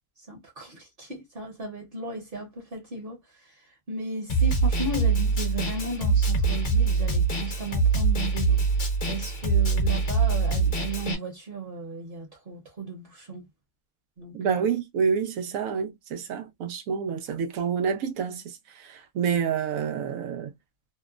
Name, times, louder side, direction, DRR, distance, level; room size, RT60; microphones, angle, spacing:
voice 1, 0.3-8.6 9.1-13.5 14.2-14.4, right 2 dB, 45° right, 1.0 m, -35 dB
Snare drum, 4.3-11.1, right 4 dB, 45° left, 0.8 m, -24 dB
voice 2, 14.3-20.5, right 7 dB, 85° right, 1.0 m, -28 dB
2.9 x 2.0 x 2.3 m
omnidirectional pair, 1.4 m